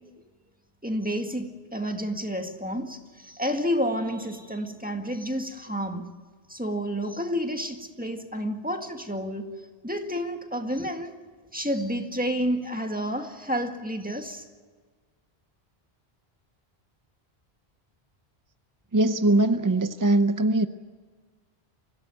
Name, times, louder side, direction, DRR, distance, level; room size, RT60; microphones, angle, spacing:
voice 1, 0.8-6.1 6.5-11.1 11.5-14.4, equal, 10° right, 1.8 m, -30 dB
voice 2, 18.9-20.7, right 2 dB, 25° right, 0.5 m, -21 dB
25.0 x 16.5 x 9.1 m
omnidirectional pair, 1.1 m